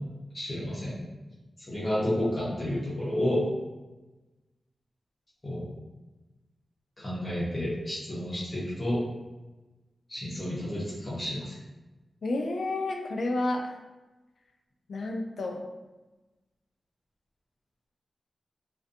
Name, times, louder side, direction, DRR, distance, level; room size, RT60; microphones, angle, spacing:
voice 1, 0.3-1.0 1.7-3.4 5.4-5.6 7.0-9.0 10.1-11.6, left 1 dB, 25° left, -9 dB, 0.7 m, -30 dB
voice 2, 12.2-13.7 14.9-15.6, left 2 dB, 75° left, 2 dB, 0.3 m, -30 dB
2.5 x 2.2 x 2.4 m, 1.1 s
wide cardioid pair, 150°, 0 cm